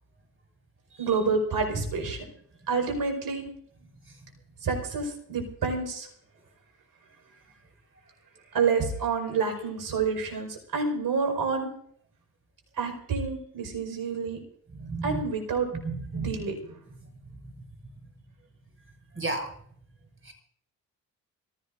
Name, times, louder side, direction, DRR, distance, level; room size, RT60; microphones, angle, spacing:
voice 1, 1.0-2.3 2.7-3.4 4.6-6.1 8.5-11.7 12.8-14.4 15.0-15.7 16.1-16.8, right 4 dB, 60° right, 4 dB, 5.3 m, -28 dB
voice 2, 14.8-15.2 15.8-16.3 19.1-19.5 20.2-20.3, right 3 dB, 30° right, 4 dB, 6.6 m, -32 dB
26.0 x 16.0 x 2.7 m, 0.64 s
hypercardioid pair, 40°, 42 cm